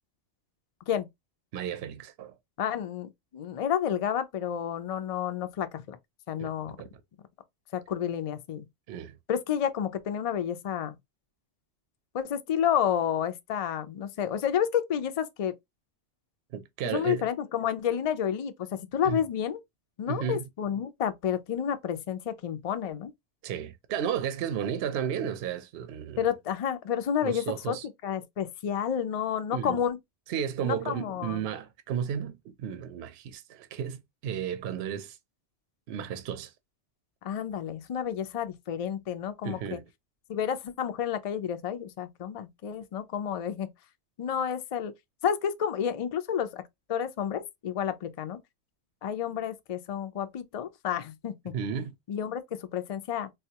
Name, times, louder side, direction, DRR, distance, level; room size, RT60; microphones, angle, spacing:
voice 1, 1.5-2.3 6.4-6.5 6.8-6.9 8.9-9.2 16.5-17.3 19.0-19.2 20.1-20.4 23.4-26.3 27.2-27.9 29.5-29.8 30.3-35.2 35.9-36.5 39.4-39.8 51.5-51.9, right 8 dB, 70° right, 0.8 m, -33 dB
voice 2, 2.6-6.0 6.3-6.8 7.7-8.7 9.3-11.0 12.1-15.5 16.8-19.6 20.0-23.1 26.2-27.8 28.0-30.0 30.6-31.4 37.2-39.8 40.3-43.7 44.2-44.9 45.2-46.6 46.9-48.4 49.0-51.5 52.1-53.3, left 9 dB, 55° left, 0.4 m, -30 dB
3.9 x 2.2 x 2.8 m
omnidirectional pair, 1.2 m